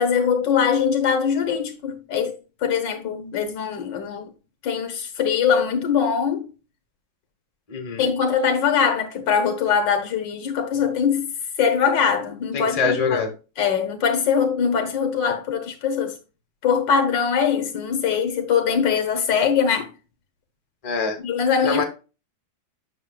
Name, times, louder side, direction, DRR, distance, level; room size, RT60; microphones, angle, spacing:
voice 1, 0.0-4.3 4.6-6.5 8.0-11.3 11.6-13.3 13.6-16.2 16.6-19.9 21.2-21.8, left 7 dB, 85° left, 2.0 m, -22 dB
voice 2, 7.7-8.1 12.5-13.3 20.8-21.2 21.6-21.8, left 4 dB, 25° left, 1.1 m, -24 dB
8.5 x 6.5 x 2.3 m
omnidirectional pair, 1.9 m